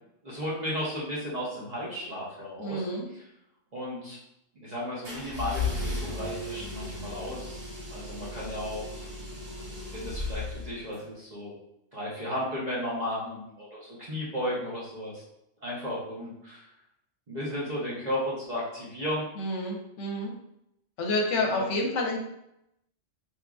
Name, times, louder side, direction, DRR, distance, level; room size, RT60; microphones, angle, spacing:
voice 1, 0.2-3.2 3.7-4.2 4.6-7.6 7.9-9.1 9.9-11.5 11.9-15.2 15.6-16.7 17.3-19.2 21.5-21.6, equal, 45° right, -7 dB, 0.7 m, -34 dB
voice 2, 2.6-3.1 19.4-20.3 21.0-22.2, left 1 dB, 75° left, 0 dB, 0.9 m, -29 dB
sound 1, 5.0-11.0, left 3 dB, 85° right, 1.3 m, -35 dB
2.9 x 2.4 x 2.3 m, 0.81 s
omnidirectional pair, 1.3 m